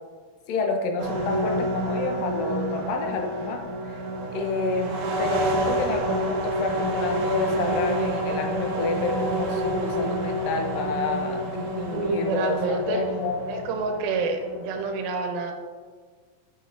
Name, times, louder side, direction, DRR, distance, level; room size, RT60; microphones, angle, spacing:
voice 1, 0.5-4.0 4.3-13.7, left 4 dB, 80° left, 4 dB, 2.2 m, -29 dB
sound 1, 1.0-14.9, right 1 dB, 70° right, 2.1 m, -29 dB
voice 2, 11.9-13.0 13.5-15.5, right 3 dB, 90° right, 3 dB, 2.7 m, -28 dB
8.8 x 5.1 x 2.5 m, 1.5 s
omnidirectional pair, 4.2 m